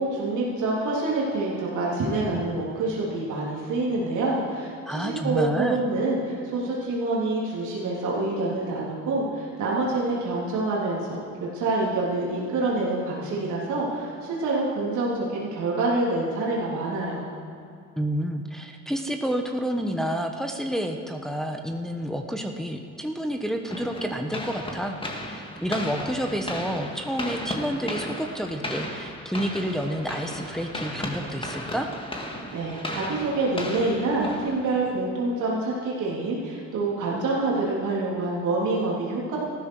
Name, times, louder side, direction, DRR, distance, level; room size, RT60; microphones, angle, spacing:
voice 1, 0.0-17.3 32.5-39.4, right 2 dB, 80° right, -5 dB, 3.4 m, -27 dB
voice 2, 4.9-5.8 18.0-31.9, equal, ahead, 3 dB, 1.2 m, -29 dB
sound 1, 23.7-35.0, left 1 dB, 15° left, 2.0 m, -35 dB
15.0 x 12.5 x 4.8 m, 2.6 s
cardioid pair, 90°, 30 cm